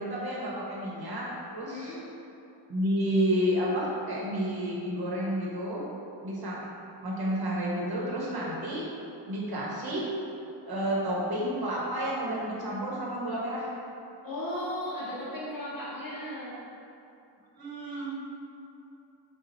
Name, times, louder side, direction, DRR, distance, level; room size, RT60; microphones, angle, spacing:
voice 1, 0.0-1.9 2.7-5.8 6.2-6.6 7.0-8.8 9.3-10.0 10.6-13.7 17.6-18.1, equal, 50° right, -5 dB, 1.0 m, -30 dB
voice 2, 1.7-2.0 14.2-16.6, left 1 dB, 50° left, -8 dB, 0.8 m, -36 dB
4.3 x 2.3 x 4.0 m, 2.8 s
wide cardioid pair, 130°, 46 cm